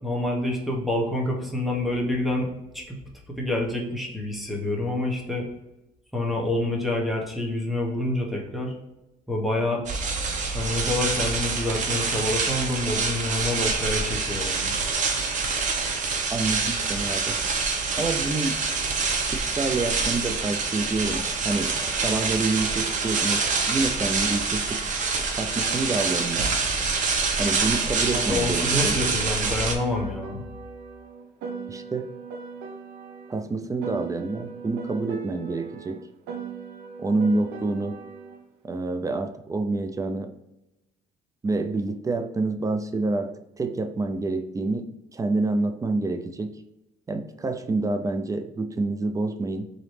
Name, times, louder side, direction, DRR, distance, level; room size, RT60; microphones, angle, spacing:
voice 1, 0.0-3.0 3.3-5.5 6.1-8.7 9.3-9.8 10.5-14.8 28.1-30.4, left 1 dB, ahead, -1 dB, 1.1 m, -27 dB
sound 1, 9.9-29.8, right 4 dB, 50° right, 0.8 m, -26 dB
voice 2, 16.3-17.4 18.0-18.6 19.3-21.8 22.0-24.9 25.3-26.5 27.4-29.0 31.7-32.1 33.3-36.0 37.0-38.0 38.6-40.3 41.4-46.6 47.1-49.7, right 3 dB, 20° right, 7 dB, 0.4 m, -27 dB
Piano, 28.9-33.4 33.8-38.4, right 6 dB, 80° right, 0.7 m, -39 dB
3.8 x 3.1 x 3.2 m, 0.94 s
cardioid pair, 110°, 17 cm